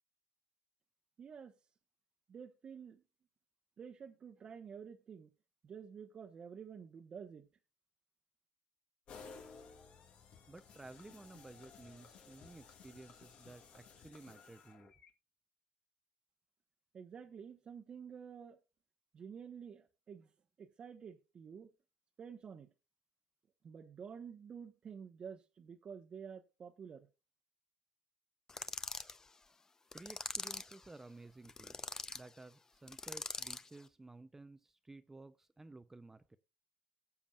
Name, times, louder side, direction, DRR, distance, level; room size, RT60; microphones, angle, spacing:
voice 1, 1.2-1.5 2.3-3.0 3.8-5.3 5.6-7.5 16.9-18.6 19.1-20.3 20.6-21.7 22.2-22.7 23.6-27.1, right 7 dB, 45° right, 1.0 m, -50 dB
sound 1, 9.1-15.1, left 5 dB, 60° left, 1.7 m, -57 dB
voice 2, 10.5-14.9 29.9-31.7 32.1-36.4, right 2 dB, 15° right, 0.6 m, -54 dB
sound 2, 28.5-29.2 29.9-30.8 31.5-32.2 32.9-33.7, left 3 dB, 25° left, 0.7 m, -43 dB
19.5 x 7.1 x 2.4 m
supercardioid pair, 85°, 2 cm